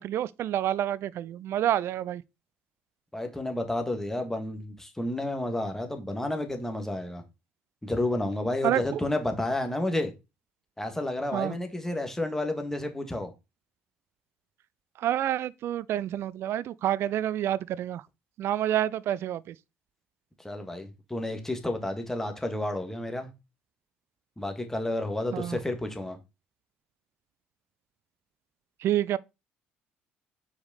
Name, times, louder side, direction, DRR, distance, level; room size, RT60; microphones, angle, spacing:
voice 1, 0.0-2.2 8.6-8.8 11.3-11.5 15.0-18.0 18.4-19.5 25.3-25.6 28.8-29.2, right 12 dB, 60° right, 0.4 m, -28 dB
voice 2, 3.1-7.2 7.8-10.1 10.8-13.3 20.4-23.3 24.4-26.2, left 1 dB, 10° left, 1.8 m, -31 dB
5.1 x 4.7 x 4.2 m
hypercardioid pair, 60°, 5 cm